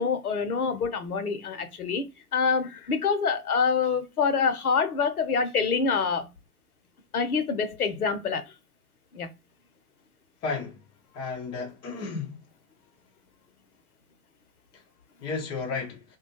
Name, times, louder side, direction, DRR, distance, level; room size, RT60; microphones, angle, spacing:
voice 1, 0.0-2.1 2.3-6.3 7.1-8.4 9.1-9.3, left 5 dB, 80° left, 0.7 m, -26 dB
voice 2, 10.4-10.8 11.1-12.3 15.2-16.0, left 4 dB, 15° left, 0.3 m, -33 dB
2.3 x 2.2 x 2.7 m
figure-of-eight pair, 85°, 44 cm